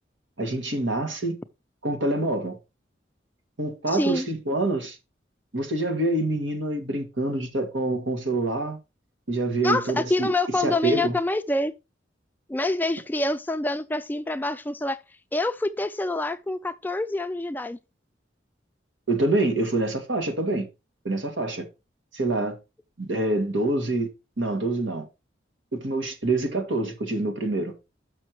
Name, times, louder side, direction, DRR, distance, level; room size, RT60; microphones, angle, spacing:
voice 1, 0.4-1.4 1.8-2.6 3.6-5.0 5.5-8.8 9.3-10.3 10.6-11.2 19.1-20.7 21.0-21.7 22.1-22.6 23.0-24.1 24.4-25.1 25.7-27.7, right 2 dB, 80° right, 2.0 m, -26 dB
voice 2, 3.9-4.3 9.6-11.7 12.5-15.0 15.3-17.8, left 2 dB, 10° left, 0.4 m, -26 dB
6.6 x 6.0 x 4.6 m
head